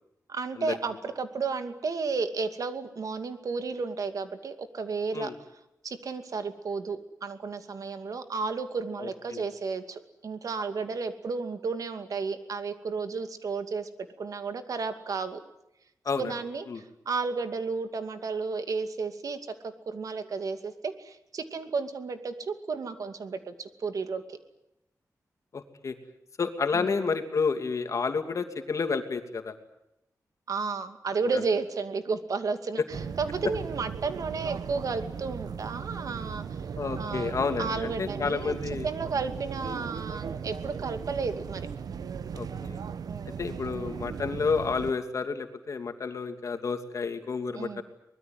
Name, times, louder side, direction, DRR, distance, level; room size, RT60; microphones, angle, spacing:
voice 1, 0.3-5.3 5.8-13.9 14.2-15.4 16.2-19.4 19.6-24.4 26.7-26.9 30.5-36.6 37.0-38.6 38.8-41.7 43.1-43.4 47.5-47.8, right 4 dB, 65° right, 8 dB, 2.5 m, -33 dB
voice 2, 9.0-9.4 16.0-16.3 16.7-16.8 25.5-25.9 26.4-29.5 31.3-31.4 36.8-38.9 39.6-39.8 42.3-42.8 43.4-47.8, left 5 dB, 55° left, 7 dB, 2.7 m, -30 dB
sound 1, 32.9-44.9, right 6 dB, 80° right, 1.0 m, -37 dB
24.0 x 20.5 x 9.4 m, 0.85 s
wide cardioid pair, 140°, 6 cm